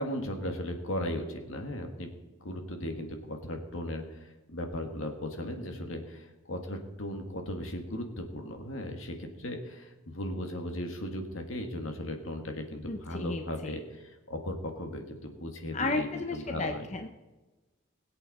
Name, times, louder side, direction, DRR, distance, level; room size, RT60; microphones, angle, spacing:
voice 1, 0.0-2.1 2.4-16.9, left 1 dB, 80° left, 4 dB, 1.8 m, -37 dB
voice 2, 12.8-13.7 15.7-17.1, left 3 dB, 35° left, 5 dB, 0.7 m, -33 dB
21.0 x 8.1 x 4.2 m, 1.1 s
head